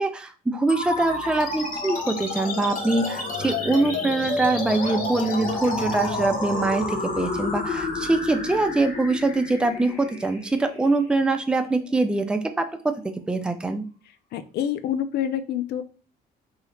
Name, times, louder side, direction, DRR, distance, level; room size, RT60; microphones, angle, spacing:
voice 1, 0.0-13.8, right 2 dB, 5° right, 6 dB, 0.4 m, -24 dB
sound 1, 0.7-11.6, left 3 dB, 50° left, 1.1 m, -30 dB
voice 2, 14.3-15.8, left 10 dB, 65° left, 10 dB, 0.4 m, -27 dB
2.8 x 2.7 x 3.2 m, 0.36 s
cardioid pair, 105°, 18 cm